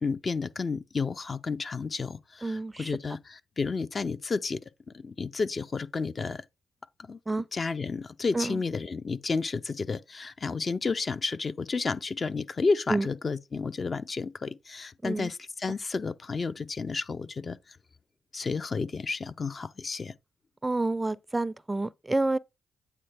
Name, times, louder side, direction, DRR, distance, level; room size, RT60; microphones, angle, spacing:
voice 1, 0.0-4.6 4.9-6.4 7.1-7.2 7.5-17.8 18.3-20.1, left 4 dB, 45° left, 0.5 m, -31 dB
voice 2, 2.4-2.9 7.3-7.5 8.3-8.6 12.9-13.1 15.0-15.3 20.6-22.4, right 2 dB, 20° right, 0.4 m, -28 dB
8.7 x 3.8 x 3.4 m
supercardioid pair, 50°, 0 cm